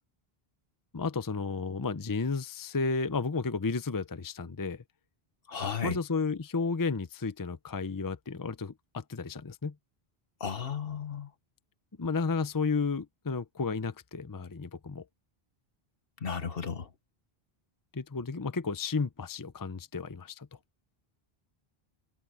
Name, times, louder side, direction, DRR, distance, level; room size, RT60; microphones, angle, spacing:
voice 1, 0.9-4.8 5.8-9.7 12.0-15.0 17.9-20.5, left 4 dB, 25° left, 0.7 m, -32 dB
voice 2, 5.5-6.0 10.4-11.3 16.2-16.9, left 6 dB, 65° left, 1.5 m, -34 dB
omnidirectional pair, 1.0 m